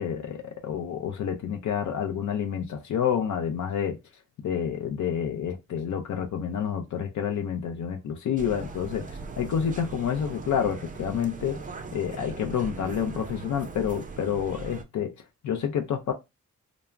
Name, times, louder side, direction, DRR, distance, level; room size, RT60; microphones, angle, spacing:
voice 1, 0.0-4.0 4.4-15.1 15.4-16.1, left 8 dB, 75° left, 0.5 m, -29 dB
sound 1, 8.4-14.8, right 4 dB, 25° right, 0.4 m, -40 dB
2.3 x 2.0 x 3.2 m
cardioid pair, 100°, 30 cm